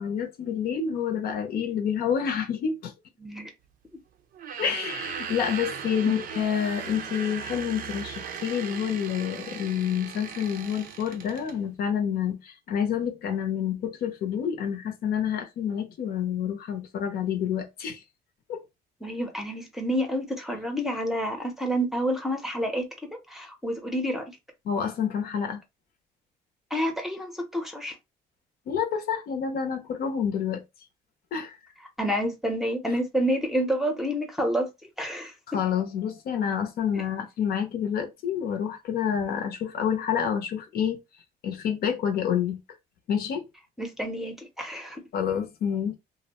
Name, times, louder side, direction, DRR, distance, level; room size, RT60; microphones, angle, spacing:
voice 1, 0.0-2.9 4.6-18.0 18.5-18.6 24.6-25.6 28.7-30.6 31.3-31.5 35.5-41.0 41.4-42.6 43.1-43.4 45.1-46.0, left 8 dB, 65° left, 0.7 m, -28 dB
voice 2, 3.2-3.5 19.0-24.4 26.7-28.0 32.0-34.7 35.0-35.3 43.8-45.0, equal, ahead, 0.7 m, -29 dB
sound 1, 4.3-11.6, right 7 dB, 60° right, 0.5 m, -38 dB
2.6 x 2.0 x 2.9 m
cardioid pair, 110°, 17 cm